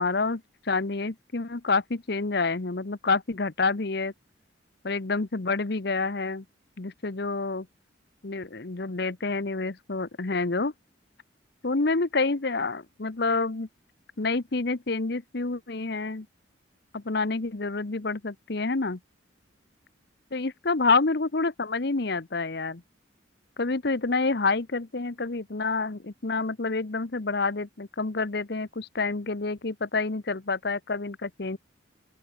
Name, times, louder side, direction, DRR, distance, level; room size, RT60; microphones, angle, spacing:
voice 1, 0.0-4.1 4.8-6.4 6.8-7.7 8.2-10.7 11.6-13.7 14.2-16.3 16.9-19.0 20.3-22.8 23.6-31.6, left 3 dB, 55° left, 1.0 m, -28 dB
open air
head